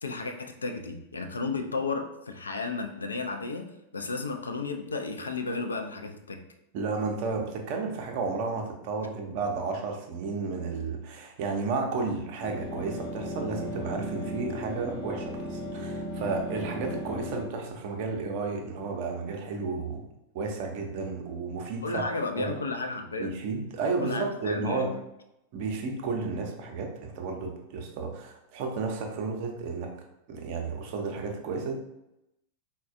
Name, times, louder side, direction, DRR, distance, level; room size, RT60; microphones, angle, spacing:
voice 1, 0.0-6.4 21.8-23.3 24.0-25.0, left 3 dB, 75° left, 5 dB, 0.3 m, -33 dB
voice 2, 6.7-20.1 20.3-22.1 22.4-22.6 23.2-24.9 25.5-30.0 30.3-31.7, right 4 dB, 45° right, 2 dB, 0.5 m, -32 dB
sound 1, 12.4-17.4, equal, 35° left, 0.7 m, -36 dB
3.9 x 2.1 x 2.5 m, 0.88 s
figure-of-eight pair, 90°, 0 cm